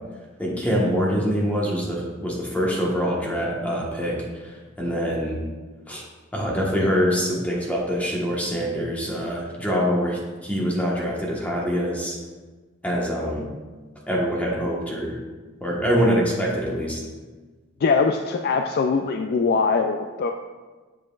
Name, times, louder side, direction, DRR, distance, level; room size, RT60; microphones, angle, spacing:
voice 1, 0.4-4.2 4.8-5.4 5.9-6.0 6.3-12.2 12.8-13.5 14.1-15.2 15.6-17.0, equal, 5° left, -3 dB, 1.2 m, -24 dB
voice 2, 17.8-20.3, left 4 dB, 50° left, 5 dB, 0.3 m, -22 dB
7.6 x 7.5 x 2.4 m, 1.3 s
head